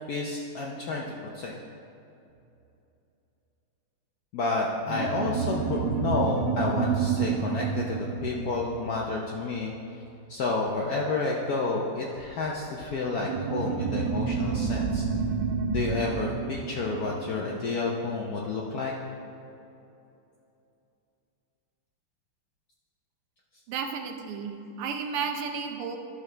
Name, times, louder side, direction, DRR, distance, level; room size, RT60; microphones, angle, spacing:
voice 1, 0.1-1.0 1.3-1.5 4.3-9.7 10.3-15.0 15.7-18.9, left 3 dB, 70° left, -2 dB, 0.9 m, -30 dB
sound 1, 4.9-9.8 13.2-18.1, right 6 dB, 70° right, 1.2 m, -30 dB
voice 2, 23.7-26.0, right 6 dB, 90° right, 5 dB, 1.7 m, -33 dB
12.0 x 6.0 x 3.3 m, 2.8 s
omnidirectional pair, 2.4 m